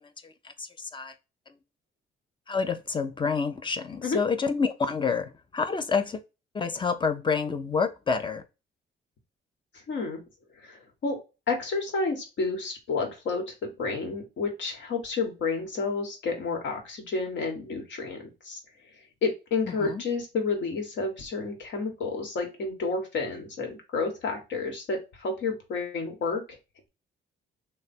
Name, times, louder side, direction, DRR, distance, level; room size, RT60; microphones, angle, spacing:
voice 1, 0.2-1.1 2.5-6.2 6.5-8.4 19.8-20.0, left 5 dB, 25° left, 0.5 m, -28 dB
voice 2, 9.9-10.2 10.6-11.2 11.5-18.6 19.2-26.4, left 4 dB, 65° left, 1.3 m, -30 dB
3.2 x 2.2 x 4.1 m
cardioid pair, 90°, 20 cm